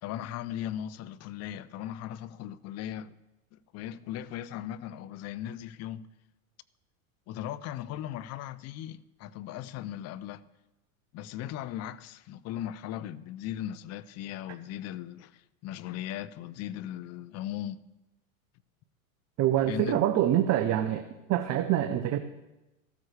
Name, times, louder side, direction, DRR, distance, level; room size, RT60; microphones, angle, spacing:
voice 1, 0.0-3.2 3.5-6.1 7.3-10.4 11.1-17.8 19.7-20.0, left 11 dB, 35° left, 0.5 m, -38 dB
voice 2, 19.4-21.0 21.3-22.2, right 12 dB, 40° right, 0.7 m, -25 dB
14.5 x 13.0 x 3.3 m
hypercardioid pair, 100°, 43 cm